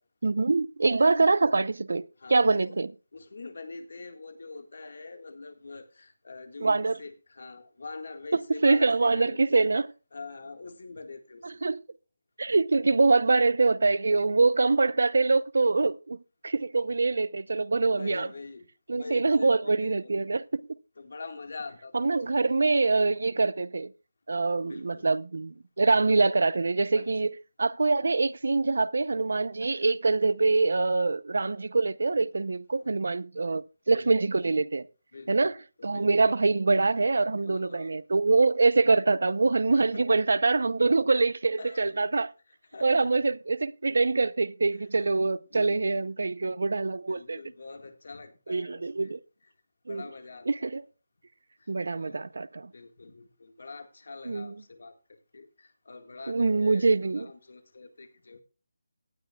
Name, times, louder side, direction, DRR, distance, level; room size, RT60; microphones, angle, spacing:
voice 1, 0.2-2.9 6.6-6.9 8.6-9.8 11.6-11.8 12.4-18.3 18.9-20.7 21.9-23.9 24.3-27.3 27.6-34.9 35.3-35.5 35.8-42.3 42.8-47.4 48.5-49.2 49.9-50.0 50.5-50.8 51.7-52.7 54.3-54.5 56.3-57.3, right 3 dB, 65° right, 0.7 m, -24 dB
voice 2, 1.0-1.4 2.2-2.8 3.1-9.7 10.1-11.6 17.8-20.4 21.0-22.4 24.6-25.1 26.9-27.1 32.8-33.0 33.4-33.5 33.9-34.1 35.1-35.5 35.8-36.1 37.4-38.0 39.7-40.0 41.6-42.0 42.5-43.1 44.7-45.2 45.5-46.1 47.1-49.1 49.4-49.5 49.9-50.7 51.6-52.3 52.6-55.0 55.3-58.4, left 3 dB, 55° left, 1.7 m, -45 dB
18.5 x 10.5 x 2.3 m
hypercardioid pair, 180°, 0 cm